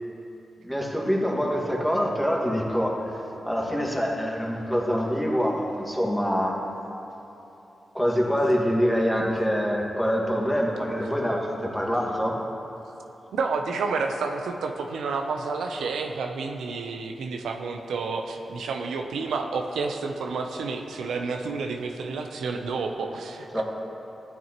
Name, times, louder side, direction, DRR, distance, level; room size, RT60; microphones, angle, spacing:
voice 1, 0.6-3.0 3.4-6.5 7.9-12.4 23.5-23.6, equal, 5° left, -2 dB, 1.7 m, -25 dB
voice 2, 13.3-23.6, right 4 dB, 90° right, 4 dB, 0.6 m, -30 dB
14.0 x 9.3 x 2.9 m, 3.0 s
cardioid pair, 55°, 0 cm